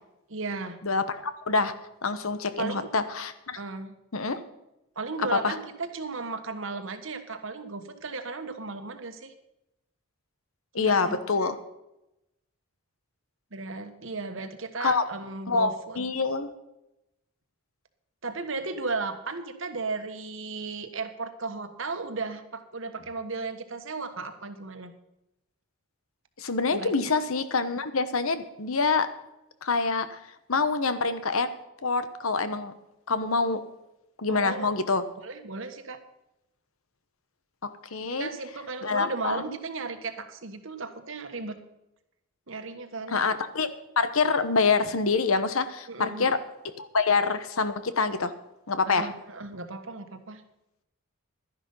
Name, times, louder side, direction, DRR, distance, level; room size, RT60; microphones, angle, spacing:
voice 1, 0.3-0.8 2.6-2.9 3.5-4.0 4.9-9.3 10.8-11.5 13.5-16.0 18.2-24.9 26.7-26.9 34.3-34.7 35.2-36.0 38.0-41.6 42.5-43.2 45.9-46.3 48.9-50.4, right 3 dB, 60° right, 8 dB, 1.4 m, -35 dB
voice 2, 0.8-1.7 2.0-3.6 4.1-4.4 5.4-5.5 10.7-11.6 14.8-15.0 15.5-16.5 26.4-29.1 29.6-30.2 30.5-31.5 31.8-32.7 33.1-33.6 34.2-35.0 37.9-38.3 38.8-39.4 43.1-46.4 46.8-48.3 48.7-49.1, left 4 dB, 75° left, 11 dB, 1.1 m, -26 dB
12.0 x 11.0 x 5.5 m, 0.90 s
head